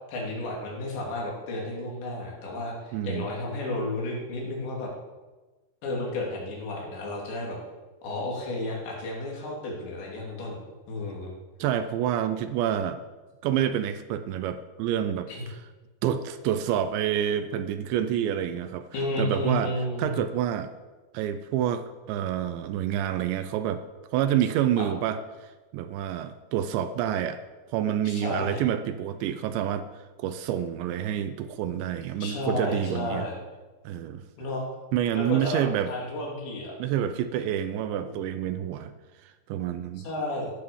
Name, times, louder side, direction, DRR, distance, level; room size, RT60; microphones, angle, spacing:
voice 1, 0.1-4.9 5.8-7.6 8.0-10.6 10.9-11.4 15.3-15.4 18.9-20.2 24.8-24.9 27.9-28.6 32.2-33.4 34.4-34.7 35.1-36.7 38.0-38.1 40.0-40.5, left 1 dB, 70° left, -2 dB, 5.3 m, -32 dB
voice 2, 2.9-3.3 11.6-13.0 13.4-15.6 16.0-18.9 19.2-19.7 20.0-20.7 21.1-23.8 24.1-25.2 25.7-27.4 27.7-33.3 33.9-34.3 34.9-35.9 36.8-38.9 39.2-40.1, right 10 dB, 80° right, 10 dB, 2.9 m, -28 dB
15.0 x 10.5 x 7.1 m, 1.2 s
omnidirectional pair, 5.4 m